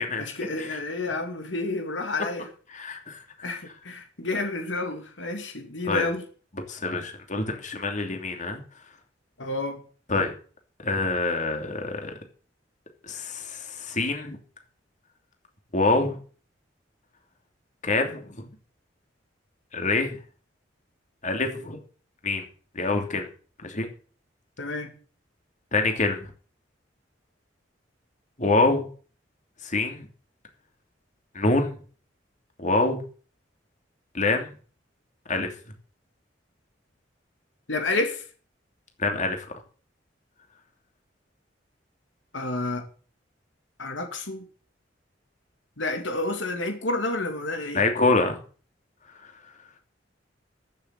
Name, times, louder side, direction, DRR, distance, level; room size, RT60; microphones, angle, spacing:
voice 1, 0.2-2.5 3.4-6.2 9.4-9.8 24.6-24.9 37.7-38.2 42.3-42.8 43.8-44.4 45.8-47.8, left 2 dB, 90° left, 5 dB, 2.5 m, -30 dB
voice 2, 2.7-3.2 5.8-6.1 6.7-8.6 10.1-10.3 10.8-12.1 13.1-14.4 15.7-16.2 17.8-18.4 19.7-20.2 21.2-21.8 22.2-22.4 22.7-23.3 23.6-23.9 25.7-26.3 28.4-28.8 29.6-30.1 31.3-31.8 32.6-33.0 34.1-34.5 35.3-35.5 39.0-39.5 47.7-48.4, left 3 dB, 45° left, 4 dB, 2.9 m, -25 dB
14.0 x 7.2 x 8.3 m, 0.41 s
head